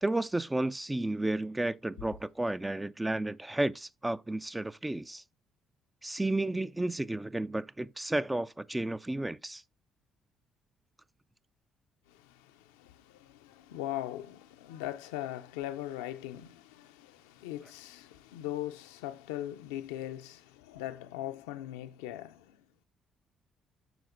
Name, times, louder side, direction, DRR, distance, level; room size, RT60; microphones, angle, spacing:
voice 1, 0.0-5.2 6.0-9.6, right 2 dB, 15° right, 0.4 m, -32 dB
voice 2, 12.1-22.6, left 13 dB, 80° left, 0.5 m, -40 dB
12.0 x 4.1 x 2.5 m
hypercardioid pair, 45°, 0 cm